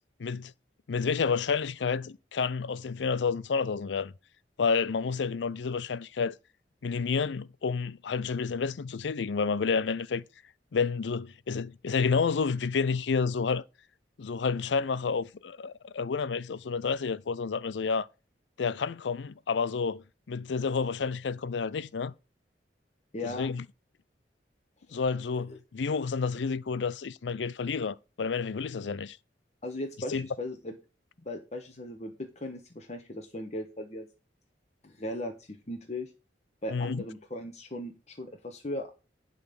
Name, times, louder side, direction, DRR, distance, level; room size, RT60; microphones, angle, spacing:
voice 1, 0.2-0.5 0.9-4.1 4.6-6.3 6.8-10.2 10.7-13.6 14.2-18.1 18.6-22.1 23.2-23.6 24.9-29.2 30.1-30.2 36.7-37.0, left 5 dB, 85° left, 0.5 m, -30 dB
voice 2, 23.1-23.5 24.9-25.0 25.4-25.6 29.6-30.8 31.2-34.1 34.8-36.1 36.6-38.9, left 1 dB, 40° left, 1.2 m, -38 dB
11.5 x 4.0 x 6.9 m
head